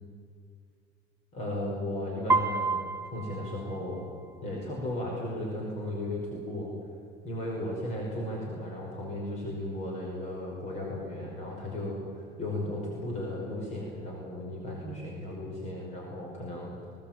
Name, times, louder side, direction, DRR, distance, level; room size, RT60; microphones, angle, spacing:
voice 1, 1.3-4.0 4.4-6.7 7.2-16.8, left 1 dB, 40° left, -2 dB, 5.4 m, -35 dB
Piano, 2.3-4.3, right 3 dB, 15° right, 0.6 m, -30 dB
21.5 x 19.0 x 9.0 m, 2.4 s
cardioid pair, 175°, 18 cm